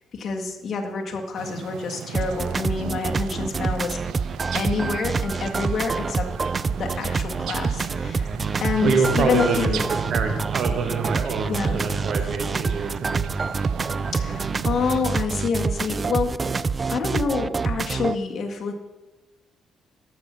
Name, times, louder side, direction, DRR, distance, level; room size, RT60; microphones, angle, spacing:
voice 1, 0.1-4.0 4.5-6.3 6.8-8.3 8.6-9.9 11.5-11.8 14.1-16.5 16.9-18.7, left 5 dB, 50° left, 1 dB, 1.8 m, -27 dB
sound 1, 1.3-15.0, right 8 dB, 85° right, 0.6 m, -36 dB
sound 2, 2.1-18.2, right 4 dB, 35° right, 0.4 m, -27 dB
voice 2, 8.8-9.8 10.1-13.3, right 5 dB, 65° right, 5 dB, 1.4 m, -25 dB
12.5 x 7.4 x 5.7 m, 1.1 s
cardioid pair, 90°, 0 cm